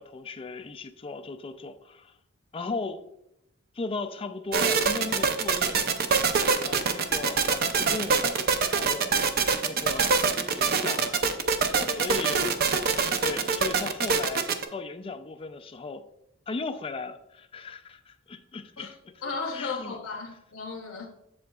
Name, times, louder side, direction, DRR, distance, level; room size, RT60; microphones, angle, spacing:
voice 1, 0.0-2.2 2.5-3.0 3.7-9.1 9.6-10.2 10.5-11.2 11.9-12.5 13.2-16.0 16.5-19.2 19.5-20.0, left 3 dB, 25° left, 0.4 m, -37 dB
sound 1, 4.5-14.7, right 5 dB, 50° right, 0.5 m, -24 dB
voice 2, 11.7-12.1 18.8-18.9 19.2-21.0, left 4 dB, 80° left, 0.8 m, -35 dB
7.5 x 7.1 x 2.3 m
head